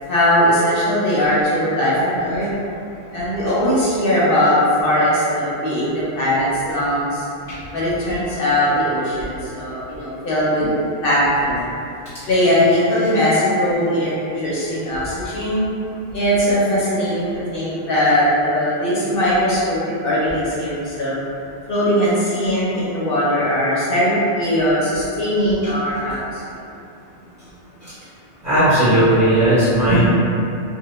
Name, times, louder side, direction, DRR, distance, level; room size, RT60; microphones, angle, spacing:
voice 1, 0.1-2.5 3.1-7.3 7.7-10.7 11.0-11.7 12.3-15.6 16.1-21.2 21.7-26.4 29.9-30.0, equal, 60° left, -8 dB, 0.7 m, -19 dB
voice 2, 28.4-30.0, right 1 dB, 45° right, -14 dB, 0.7 m, -16 dB
2.1 x 2.1 x 2.9 m, 2.6 s
omnidirectional pair, 1.2 m